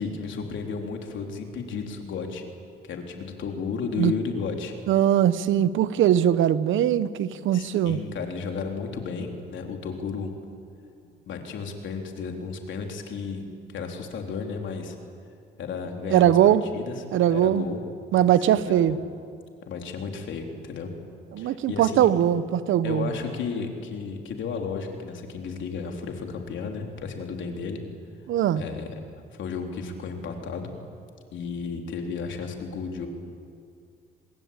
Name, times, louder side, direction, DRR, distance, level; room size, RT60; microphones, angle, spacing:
voice 1, 0.0-2.4 2.8-4.7 7.5-10.3 11.2-13.4 13.7-15.0 15.6-17.0 17.3-17.8 18.4-19.0 19.6-20.9 21.4-22.1 22.8-27.8 28.6-29.0 29.3-30.7 31.3-33.1, left 5 dB, 70° left, 3 dB, 3.8 m, -33 dB
voice 2, 4.9-8.0 16.1-16.6 17.1-17.7 18.1-19.0 21.3-23.1 28.3-28.6, right 11 dB, 80° right, 15 dB, 1.0 m, -21 dB
26.0 x 21.5 x 9.1 m, 2.3 s
cardioid pair, 90°, 20 cm